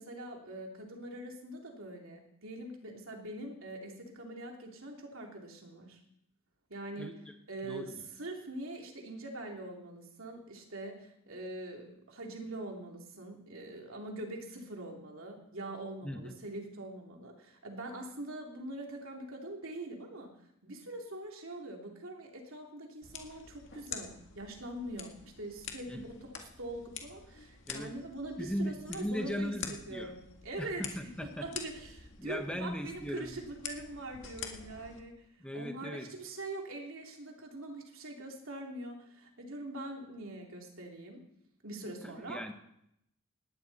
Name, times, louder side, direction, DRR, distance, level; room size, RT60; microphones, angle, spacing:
voice 1, 0.0-6.0 6.7-7.2 7.5-20.3 20.6-35.3 35.5-41.3 41.6-42.4, right 1 dB, 65° right, 1 dB, 3.1 m, -43 dB
voice 2, 7.6-7.9 16.0-16.3 25.9-26.0 27.7-27.9 28.4-30.1 30.6-31.5 32.2-33.3 35.4-36.1 42.0-42.5, equal, 5° left, 5 dB, 1.0 m, -38 dB
sound 1, 23.0-35.0, left 7 dB, 55° left, 2.0 m, -47 dB
19.5 x 13.5 x 4.2 m, 0.76 s
head